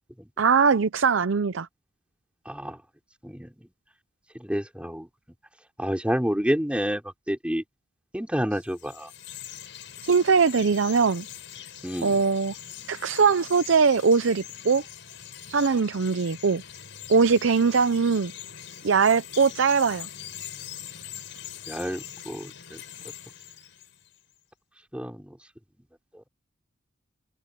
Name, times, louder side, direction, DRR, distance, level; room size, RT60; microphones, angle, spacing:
voice 1, 0.4-1.7 10.0-11.3 12.0-12.5 12.9-14.8 15.5-16.6 17.1-18.3 18.8-20.1, right 5 dB, 85° right, 0.6 m, -21 dB
voice 2, 2.5-2.8 3.2-3.5 4.4-5.1 5.8-7.0 7.3-7.6 8.1-9.1 11.8-12.2 21.7-22.5 24.9-25.2, equal, 5° right, 3.8 m, -28 dB
Chirp tweet, 8.6-24.2, left 10 dB, 70° left, 7.0 m, -42 dB
head